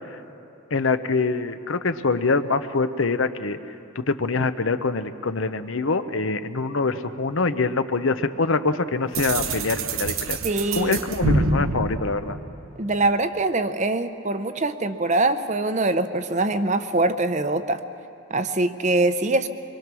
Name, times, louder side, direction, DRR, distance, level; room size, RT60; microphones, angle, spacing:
voice 1, 0.7-3.6 4.0-10.4 10.8-12.4, left 3 dB, 70° left, 11 dB, 0.8 m, -24 dB
sound 1, 9.1-13.0, right 2 dB, 75° right, 1.0 m, -26 dB
voice 2, 10.4-11.0 12.8-17.8 18.3-19.5, right 2 dB, 35° right, 10 dB, 0.7 m, -23 dB
24.5 x 22.5 x 6.2 m, 2.8 s
head